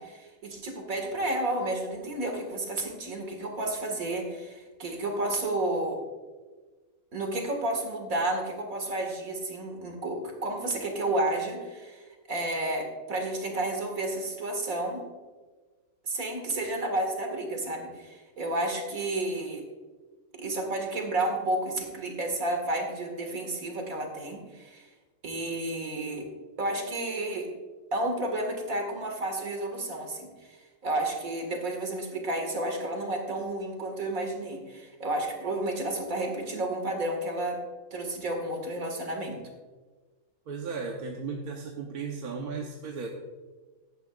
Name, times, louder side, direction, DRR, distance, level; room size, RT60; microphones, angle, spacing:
voice 1, 0.0-6.0 7.1-15.0 16.0-19.6 20.4-24.9 25.2-26.3 26.6-27.5 27.9-30.6 30.8-37.6 37.9-39.4, right 1 dB, 70° right, 3 dB, 2.3 m, -31 dB
voice 2, 40.5-43.1, right 5 dB, 85° right, 1 dB, 1.5 m, -35 dB
15.5 x 11.0 x 2.4 m, 1.3 s
omnidirectional pair, 1.5 m